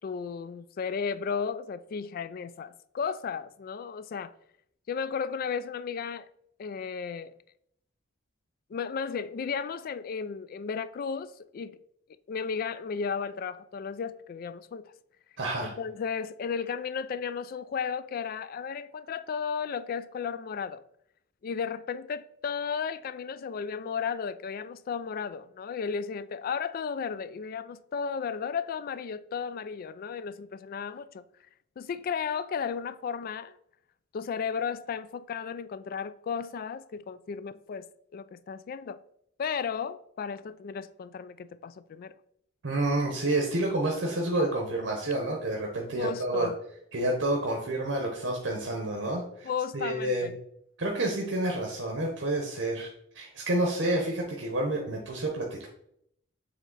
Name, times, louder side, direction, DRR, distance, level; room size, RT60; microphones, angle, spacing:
voice 1, 0.0-4.3 4.9-6.3 6.6-7.3 8.7-11.8 12.3-14.9 15.6-20.8 21.4-31.2 31.8-33.5 34.1-39.0 39.4-42.1 46.0-46.5 49.4-50.3, left 6 dB, 50° left, 0.3 m, -34 dB
voice 2, 15.4-15.7 42.6-46.5 46.9-50.3 50.8-52.9 53.1-55.7, right 1 dB, 70° right, 0.9 m, -29 dB
7.3 x 3.3 x 3.9 m
head